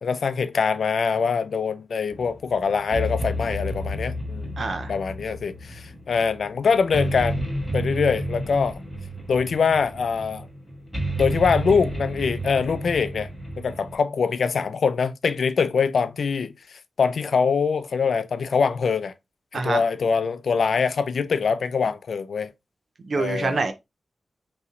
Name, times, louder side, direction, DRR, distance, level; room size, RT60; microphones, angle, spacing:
voice 1, 0.0-4.5 4.9-8.8 9.3-10.5 11.2-13.3 13.6-19.1 19.5-22.5 23.1-23.6, left 5 dB, 80° left, 0.4 m, -24 dB
Suspense Bass, 2.1-13.9, equal, 5° left, 2.5 m, -31 dB
voice 2, 4.6-4.9 19.5-19.8 23.0-23.7, right 3 dB, 60° right, 0.6 m, -25 dB
5.4 x 3.1 x 2.5 m
wide cardioid pair, 140°, 0 cm